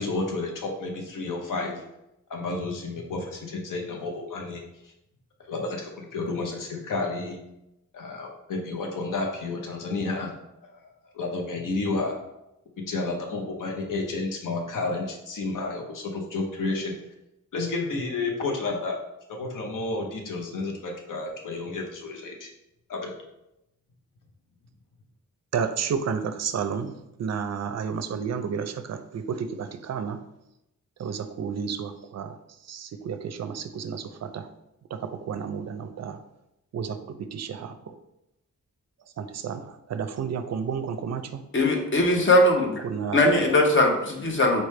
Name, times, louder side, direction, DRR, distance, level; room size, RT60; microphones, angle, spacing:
voice 1, 0.0-1.8 2.3-4.6 5.5-7.4 7.9-10.3 10.6-12.1 12.9-17.0 17.5-19.0 19.3-22.5 22.9-23.1, left 3 dB, 85° left, 1 dB, 0.8 m, -31 dB
voice 2, 25.5-30.2 31.0-32.4 32.7-34.5 34.9-36.2 36.7-37.9 39.2-41.4 42.8-43.2, right 6 dB, 55° right, 9 dB, 0.4 m, -31 dB
voice 3, 41.5-42.8 43.1-44.6, left 1 dB, 40° left, 2 dB, 0.8 m, -20 dB
4.3 x 3.2 x 3.1 m, 0.88 s
wide cardioid pair, 115°, 31 cm